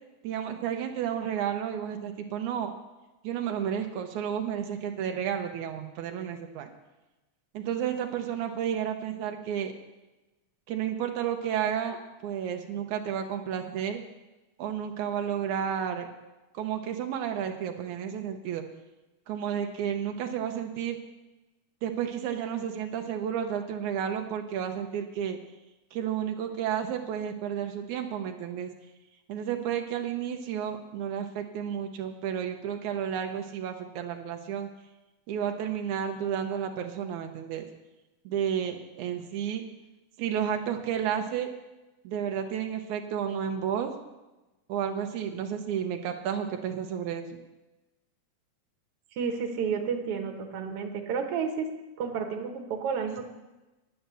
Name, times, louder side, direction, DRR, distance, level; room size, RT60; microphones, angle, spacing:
voice 1, 0.2-2.7 3.2-6.7 7.5-9.7 10.7-14.0 14.6-16.1 16.5-18.6 19.3-21.0 21.8-25.4 25.9-28.7 29.3-34.7 35.3-37.6 38.3-39.6 40.2-41.5 42.0-43.9 44.7-47.4, right 9 dB, 80° right, 4 dB, 2.2 m, -31 dB
voice 2, 49.1-51.7 52.0-53.2, right 6 dB, 60° right, 3 dB, 2.0 m, -31 dB
10.0 x 9.2 x 6.8 m, 1.1 s
omnidirectional pair, 3.4 m